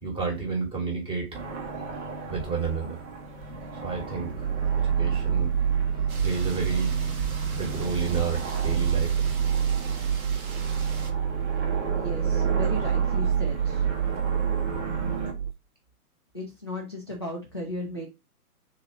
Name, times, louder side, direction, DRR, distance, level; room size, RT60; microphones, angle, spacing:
voice 1, 0.0-1.4 2.3-3.0 3.8-4.5 4.8-5.5 6.2-7.0 7.5-9.4, right 5 dB, 10° right, 1.5 m, -31 dB
sound 1, 1.3-15.3, right 3 dB, 45° right, 1.3 m, -36 dB
sound 2, 4.4-15.5, right 8 dB, 80° right, 0.6 m, -27 dB
sound 3, 6.1-11.1, right 4 dB, 65° right, 1.5 m, -44 dB
voice 2, 12.0-13.8 16.3-18.1, left 1 dB, 20° left, 0.3 m, -35 dB
3.8 x 3.0 x 4.6 m
figure-of-eight pair, 130°, 46 cm